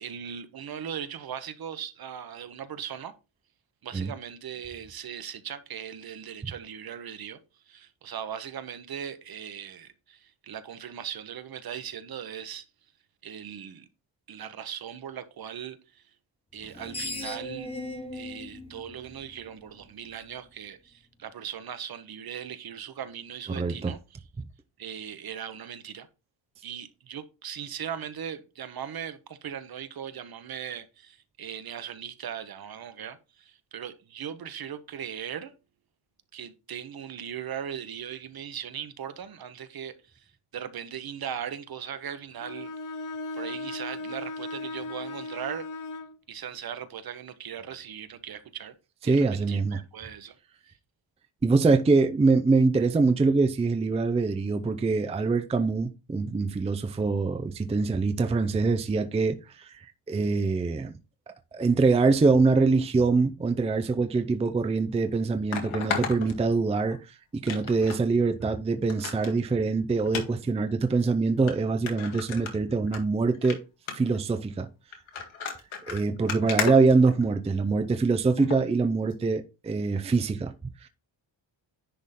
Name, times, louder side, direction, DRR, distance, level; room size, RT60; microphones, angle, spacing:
voice 1, 0.0-3.1 3.8-12.6 13.2-13.9 14.3-16.1 16.5-17.7 18.1-24.0 24.8-26.1 26.6-35.5 36.3-43.1 43.4-45.7 46.3-48.7 49.0-50.4, right 8 dB, 50° right, 0.9 m, -39 dB
Screech, 16.6-19.8, left 2 dB, 10° left, 1.0 m, -38 dB
voice 2, 23.5-23.9 49.1-49.8 51.4-60.9 61.5-67.0 67.4-73.6 73.9-74.7 75.9-80.5 80.8-80.9, right 4 dB, 15° right, 0.4 m, -24 dB
Bowed string instrument, 42.4-46.2, left 2 dB, 45° left, 0.6 m, -37 dB
sound 1, 64.4-64.5 65.5-67.0 67.5-68.0 68.4-68.5 68.9-69.3 70.1-70.3 71.0-71.1 71.5-71.6 71.9-73.0 73.3-73.6 73.9-74.2 74.9-77.6 78.4-78.6 79.1-79.2, left 6 dB, 85° left, 2.0 m, -34 dB
10.0 x 3.6 x 4.2 m
wide cardioid pair, 150°, 47 cm